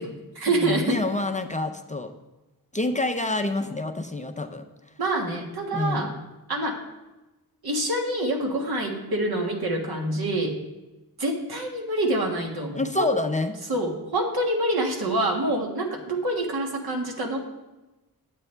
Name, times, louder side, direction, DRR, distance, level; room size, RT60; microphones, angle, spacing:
voice 1, 0.0-1.0 5.0-6.1 6.5-6.8 7.6-10.6 11.2-13.1 13.7-17.4, right 1 dB, 75° right, 1 dB, 1.7 m, -26 dB
voice 2, 0.5-2.1 2.7-4.7 5.7-6.2 12.7-13.5, left 2 dB, 20° left, 5 dB, 0.5 m, -27 dB
10.5 x 8.0 x 3.3 m, 1.1 s
wide cardioid pair, 115°, 37 cm